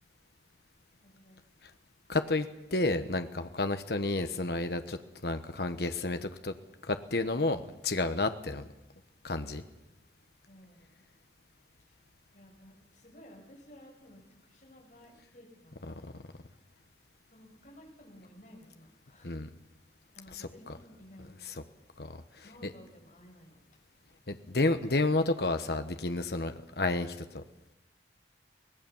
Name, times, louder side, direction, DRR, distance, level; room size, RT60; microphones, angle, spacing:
voice 1, 1.0-1.4 10.5-11.0 11.8-12.0 12.3-16.1 16.5-16.6 17.3-19.4 19.9-21.5 22.4-23.6, equal, 45° left, -1 dB, 7.3 m, -55 dB
voice 2, 2.1-5.0 5.2-6.5 6.9-8.7 9.2-9.6 15.9-16.0 19.2-19.5 22.0-22.2 24.3-27.4, left 2 dB, 60° left, 8 dB, 1.1 m, -30 dB
24.5 x 18.5 x 7.2 m, 0.93 s
head